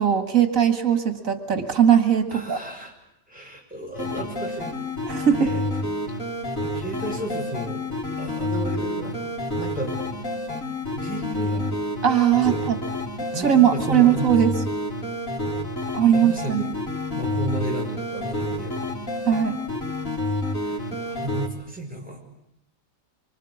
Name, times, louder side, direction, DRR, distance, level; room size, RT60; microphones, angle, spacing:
voice 1, 0.0-2.6 5.1-5.5 12.0-12.8 13.4-14.6 15.9-16.7 19.3-19.6, right 9 dB, 85° right, 8 dB, 2.2 m, -19 dB
voice 2, 2.3-2.9 3.3-4.7 5.4-5.7 6.6-7.8 8.2-9.2 9.5-10.0 10.9-11.8 12.4-12.7 13.3-14.3 16.1-16.8 17.1-18.8 20.6-22.2, right 1 dB, 5° right, -1 dB, 6.6 m, -33 dB
sound 1, 3.9-21.5, left 1 dB, 90° left, 4.2 m, -29 dB
26.0 x 25.0 x 8.5 m, 0.84 s
omnidirectional pair, 1.4 m